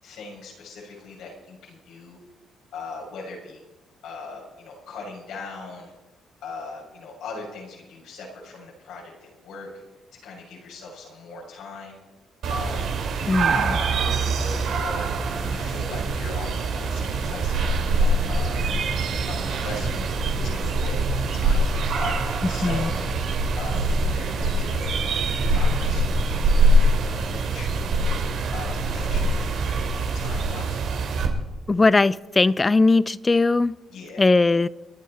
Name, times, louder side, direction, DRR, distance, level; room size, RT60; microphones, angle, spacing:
voice 1, 0.0-2.2 2.7-3.6 4.0-5.9 6.4-9.7 10.2-12.0 12.5-12.9 13.5-15.1 15.5-23.1 23.5-27.9 28.5-30.8 33.9-34.2, left 3 dB, 80° left, 6.7 m, -40 dB
sound 1, 12.4-31.3, right 2 dB, 70° right, 2.7 m, -24 dB
voice 2, 13.3-13.8 22.6-22.9 31.7-33.8 34.2-34.7, left 3 dB, 25° left, 0.5 m, -19 dB
29.5 x 10.5 x 4.4 m
cardioid pair, 90°, 0 cm